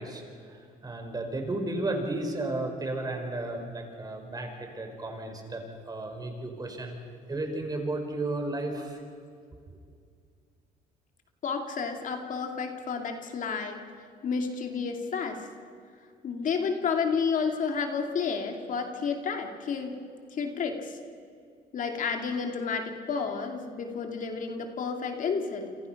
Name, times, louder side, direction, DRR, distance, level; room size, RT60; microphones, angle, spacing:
voice 1, 0.0-6.9 7.3-9.0, right 2 dB, 20° right, 4 dB, 5.1 m, -33 dB
voice 2, 11.4-13.8 14.2-15.5 16.2-19.9 20.3-21.0 21.7-25.8, left 5 dB, 50° left, 4 dB, 2.5 m, -31 dB
28.5 x 26.5 x 5.9 m, 2.3 s
cardioid pair, 110°, 17 cm